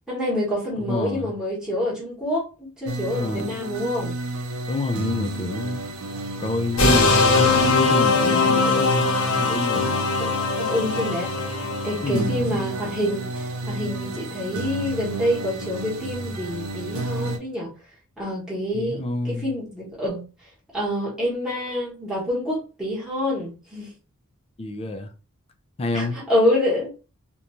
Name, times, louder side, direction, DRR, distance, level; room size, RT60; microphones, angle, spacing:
voice 1, 0.1-4.2 8.1-8.5 10.2-11.4 11.8-17.7 18.2-19.0 19.2-20.3 20.7-23.9 25.9-26.9, left 1 dB, 5° right, 1.0 m, -27 dB
voice 2, 0.8-1.3 3.1-3.5 4.7-5.9 6.4-9.1 9.4-10.0 12.0-12.6 18.7-19.6 24.6-25.1 25.8-26.2, left 2 dB, 25° left, 0.4 m, -27 dB
sound 1, 2.9-17.4, right 2 dB, 75° right, 0.6 m, -31 dB
sound 2, 6.8-12.1, left 4 dB, 70° left, 0.7 m, -21 dB
2.5 x 2.2 x 2.9 m
head